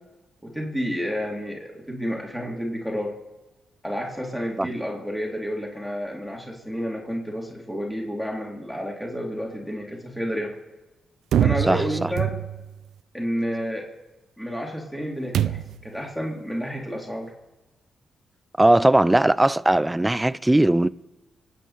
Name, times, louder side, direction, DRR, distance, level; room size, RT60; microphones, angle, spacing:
voice 1, 0.4-3.1 3.8-10.5 11.4-12.4 13.1-13.9 14.4-17.3, equal, 5° left, 3.6 m, -30 dB
sound 1, 11.3-12.8 15.3-15.9, right 10 dB, 85° right, 0.4 m, -24 dB
voice 2, 11.7-12.1 18.6-20.9, right 1 dB, 15° right, 0.5 m, -19 dB
26.0 x 9.3 x 4.5 m
cardioid pair, 80°, 0 cm